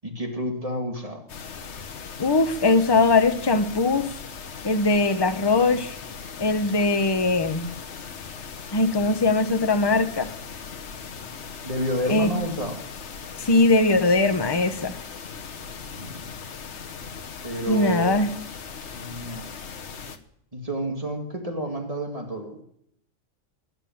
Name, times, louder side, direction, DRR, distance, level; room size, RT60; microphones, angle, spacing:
voice 1, 0.0-1.3 11.6-12.9 15.9-16.2 17.4-18.1 18.9-19.5 20.5-22.6, equal, 30° right, 2 dB, 2.2 m, -30 dB
sound 1, 1.3-20.2, left 6 dB, 65° left, 1.4 m, -39 dB
voice 2, 2.2-4.1 4.6-5.9 6.4-7.7 8.7-10.3 12.1-12.3 13.4-15.0 17.7-18.3, left 3 dB, 20° left, 7 dB, 1.0 m, -21 dB
16.5 x 10.5 x 7.2 m, 0.69 s
omnidirectional pair, 1.3 m